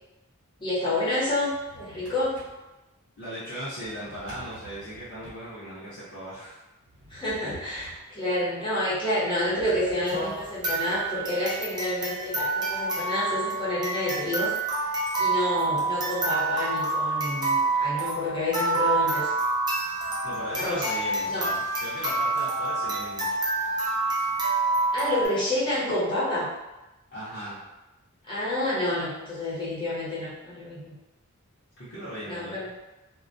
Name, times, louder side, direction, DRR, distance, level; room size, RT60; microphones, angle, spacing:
voice 1, 0.6-2.3 7.1-14.5 15.2-19.3 20.6-20.9 21.3-21.5 24.9-26.5 28.3-30.9 32.2-32.7, left 1 dB, 20° left, -9 dB, 0.8 m, -29 dB
Drawer open or close, 1.3-2.6 3.8-5.5 6.8-8.1 9.4-11.1, right 1 dB, 60° right, 0.9 m, -49 dB
voice 2, 3.2-6.6 20.2-23.3 27.1-27.6 31.8-32.6, equal, 55° left, -12 dB, 0.7 m, -38 dB
sound 1, 10.1-25.3, right 3 dB, 20° right, 0.5 m, -27 dB
2.2 x 2.2 x 2.5 m, 1.0 s
head